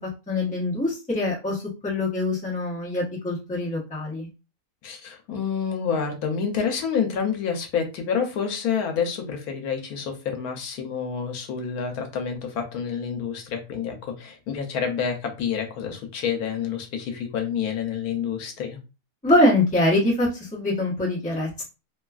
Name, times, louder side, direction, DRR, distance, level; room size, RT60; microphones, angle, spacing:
voice 1, 0.3-4.3 19.2-21.6, left 1 dB, 5° left, -5 dB, 0.8 m, -24 dB
voice 2, 4.8-18.8, left 7 dB, 85° left, 4 dB, 1.1 m, -28 dB
2.9 x 2.3 x 2.3 m, 0.29 s
omnidirectional pair, 1.6 m